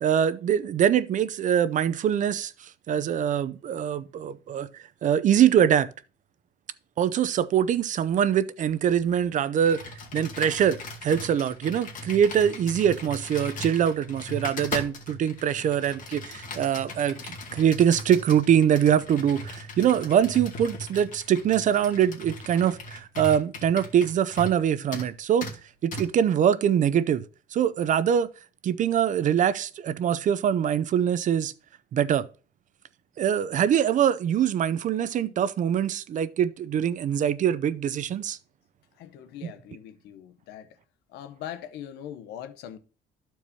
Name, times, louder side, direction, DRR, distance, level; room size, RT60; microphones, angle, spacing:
voice 1, 0.0-2.5 2.9-4.7 5.0-5.9 7.0-9.8 10.1-25.5 25.8-27.2 27.5-28.3 28.6-31.5 31.9-32.2 33.2-38.4 39.4-39.5, right 9 dB, 50° right, 0.5 m, -23 dB
Computer keyboard, 9.6-24.6 24.9-25.1 25.4-25.6 25.9-26.1, left 1 dB, 50° left, 2.2 m, -38 dB
voice 2, 39.0-40.8 41.1-42.8, left 10 dB, 85° left, 0.8 m, -41 dB
13.5 x 4.6 x 2.8 m
cardioid pair, 110°, 17 cm